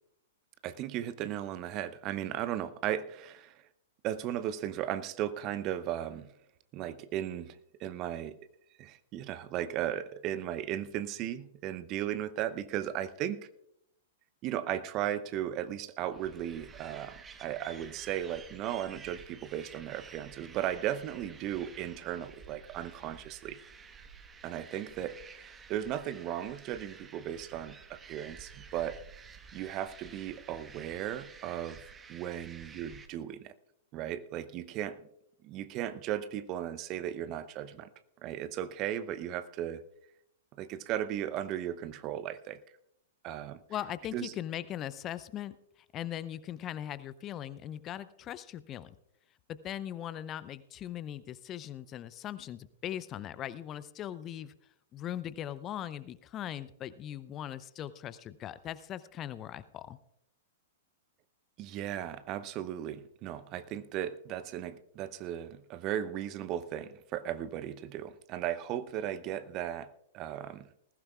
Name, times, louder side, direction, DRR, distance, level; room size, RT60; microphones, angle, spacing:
voice 1, 0.6-3.6 4.0-6.3 6.7-8.4 8.8-13.5 14.4-23.6 24.4-29.0 29.5-31.8 32.1-33.6 33.9-35.0 35.4-37.9 38.2-39.9 40.6-42.6 43.2-43.6 44.1-44.3 61.6-70.7, right 11 dB, 40° right, 14 dB, 0.7 m, -36 dB
sound 1, 16.1-33.1, right 5 dB, 20° right, 1.2 m, -51 dB
voice 2, 43.7-49.0 49.5-54.5 54.9-60.0, left 11 dB, 30° left, 16 dB, 0.6 m, -40 dB
19.5 x 15.5 x 2.4 m, 0.78 s
figure-of-eight pair, 105°, 0 cm